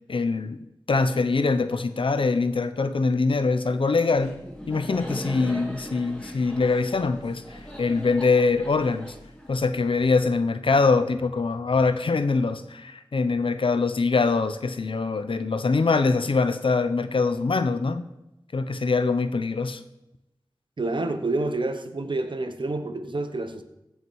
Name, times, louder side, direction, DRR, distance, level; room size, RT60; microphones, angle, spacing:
voice 1, 0.1-0.6 0.9-4.4 4.7-9.2 9.5-18.0 18.5-19.8, left 4 dB, 85° left, 11 dB, 0.7 m, -23 dB
Laughter, 4.2-10.0, equal, 10° left, 3.2 m, -40 dB
voice 2, 20.8-23.6, right 2 dB, 65° right, 8 dB, 1.0 m, -28 dB
15.5 x 5.7 x 4.7 m, 0.91 s
wide cardioid pair, 45°, 9 cm